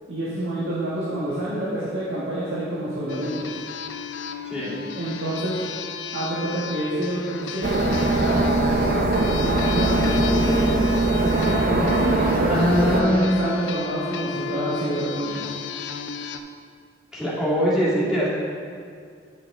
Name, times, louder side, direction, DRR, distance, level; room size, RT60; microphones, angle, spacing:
voice 1, 0.1-3.5 4.6-5.6 6.1-10.6 11.1-15.4, right 1 dB, 85° right, -9 dB, 1.4 m, -28 dB
sound 1, 3.1-16.4, left 6 dB, 85° left, 0.4 m, -34 dB
sound 2, 7.6-13.0, right 2 dB, 50° right, 0.6 m, -21 dB
voice 2, 12.5-13.6 17.1-18.3, equal, 5° right, -9 dB, 2.0 m, -22 dB
9.6 x 5.7 x 3.6 m, 2.2 s
head